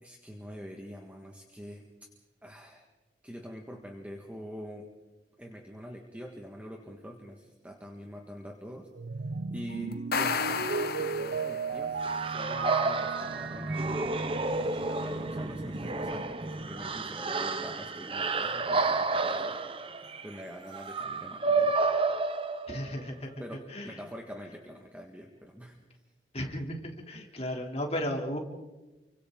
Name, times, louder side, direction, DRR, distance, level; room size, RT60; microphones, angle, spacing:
voice 1, 0.0-1.9 2.4-2.9 3.2-4.9 5.4-8.9 9.5-14.2 14.9-19.6 20.2-21.8 23.4-25.8, equal, 10° right, 1 dB, 1.8 m, -44 dB
sound 1, 8.9-16.2, right 4 dB, 75° right, 0.6 m, -36 dB
sound 2, 9.9-11.9, left 5 dB, 60° left, 1.1 m, -32 dB
sound 3, 12.0-23.1, right 3 dB, 30° right, 1.0 m, -31 dB
voice 2, 22.7-23.3 23.7-23.9 26.3-28.4, equal, 35° left, 1 dB, 3.4 m, -34 dB
29.0 x 25.0 x 4.0 m, 1.1 s
head